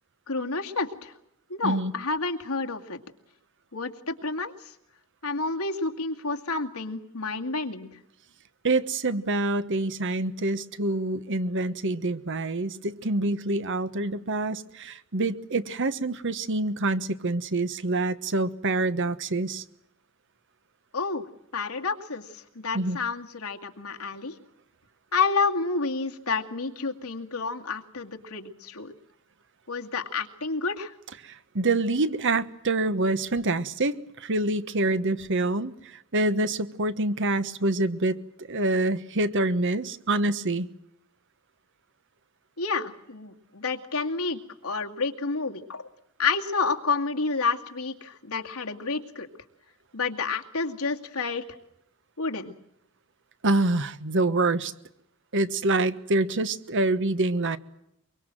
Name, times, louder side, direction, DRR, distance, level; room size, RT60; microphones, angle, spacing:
voice 1, 0.3-1.1 1.5-3.0 3.7-4.7 5.2-8.0 20.9-21.2 21.5-24.3 25.1-28.9 29.7-30.9 42.6-45.9 46.2-49.3 49.9-51.4 52.2-52.5, left 4 dB, 90° left, 4 dB, 2.3 m, -29 dB
voice 2, 8.6-19.6 22.7-23.0 31.5-35.7 36.1-38.2 38.5-40.7 53.4-54.7 55.3-57.6, right 2 dB, 60° right, 12 dB, 1.3 m, -26 dB
23.5 x 23.5 x 7.7 m, 0.80 s
head